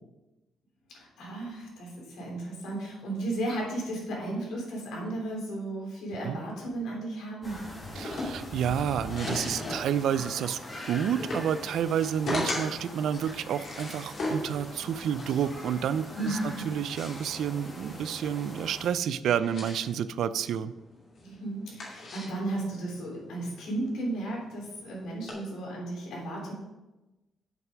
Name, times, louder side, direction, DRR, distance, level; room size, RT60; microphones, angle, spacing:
voice 1, 0.9-7.6 16.1-16.7 21.2-26.5, right 2 dB, 85° left, -3 dB, 3.4 m, -34 dB
sound 1, 7.4-18.9, left 1 dB, 20° left, 1.7 m, -43 dB
sound 2, 7.8-25.3, left 1 dB, 45° left, 2.5 m, -39 dB
voice 2, 8.0-20.7, right 8 dB, 70° right, 15 dB, 0.4 m, -30 dB
7.5 x 6.6 x 5.1 m, 1.0 s
cardioid pair, 165°, 0 cm